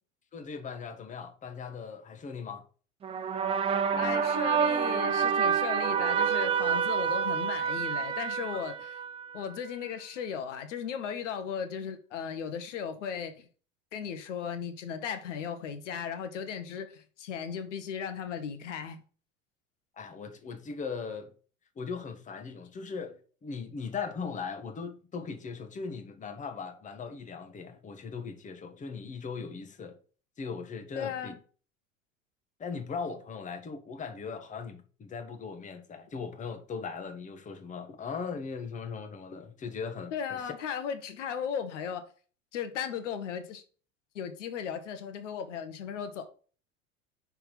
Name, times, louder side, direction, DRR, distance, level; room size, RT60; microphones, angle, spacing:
voice 1, 0.3-2.6 8.5-8.6 20.0-21.3 21.8-30.0 30.4-31.3 32.6-40.5, left 5 dB, 20° left, 1.0 m, -39 dB
sound 1, 3.0-9.4, right 7 dB, 15° right, 0.4 m, -28 dB
voice 2, 4.0-8.9 9.3-13.5 13.9-19.0 31.0-31.4 40.1-42.0 42.5-43.6 44.1-46.2, left 7 dB, 65° left, 1.1 m, -36 dB
5.7 x 3.6 x 5.6 m
figure-of-eight pair, 75°, 39 cm